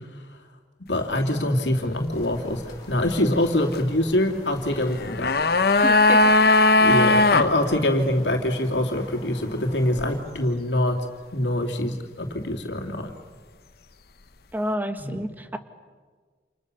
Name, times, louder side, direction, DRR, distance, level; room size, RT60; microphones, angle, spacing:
voice 1, 0.9-2.6 2.9-5.3 6.8-11.0 11.3-13.1 15.0-15.2, left 1 dB, 90° left, 2 dB, 3.0 m, -24 dB
sound 1, 2.1-10.2, left 1 dB, 25° left, 7.5 m, -46 dB
sound 2, 4.9-7.5 7.8-7.9, left 2 dB, 60° left, 0.9 m, -17 dB
voice 2, 5.8-6.3 14.5-15.6, equal, 10° right, 9 dB, 1.5 m, -29 dB
29.0 x 28.0 x 6.9 m, 1.5 s
head